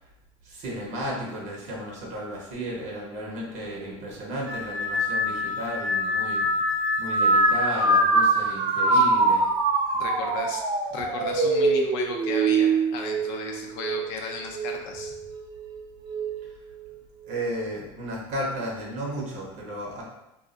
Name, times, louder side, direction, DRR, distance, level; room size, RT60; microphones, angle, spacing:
voice 1, 0.4-9.4 17.2-20.0, right 1 dB, 55° right, -2 dB, 0.7 m, -34 dB
sound 1, 4.5-14.1 14.5-15.1 16.1-16.4, right 2 dB, 25° right, 0.4 m, -24 dB
voice 2, 10.0-10.6 10.9-15.1, left 3 dB, 75° left, 2 dB, 0.5 m, -35 dB
2.3 x 2.0 x 3.7 m, 0.91 s
cardioid pair, 130°, 15 cm